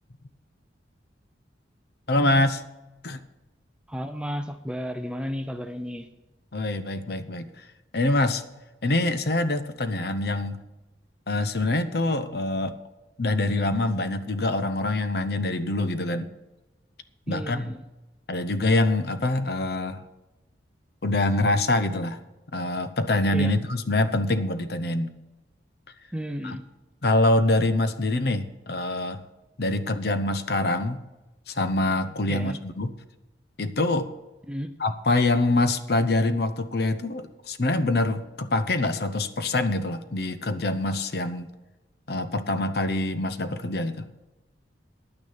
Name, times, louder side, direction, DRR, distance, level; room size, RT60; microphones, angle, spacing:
voice 1, 2.1-2.6 3.0-3.2 6.5-7.6 7.9-8.4 8.8-10.6 11.3-12.7 13.2-16.3 17.3-17.7 18.3-20.0 21.0-22.2 22.5-25.1 26.4-26.6 27.0-29.2 29.6-31.0 31.5-32.9 33.6-34.1 34.8-41.5 42.1-44.1, left 2 dB, 55° left, 11 dB, 0.7 m, -25 dB
voice 2, 3.9-6.1 17.3-17.8 23.3-23.5 26.1-26.6 32.3-32.6 34.5-34.7, equal, 5° right, 8 dB, 0.5 m, -32 dB
10.5 x 9.4 x 5.7 m, 1.1 s
head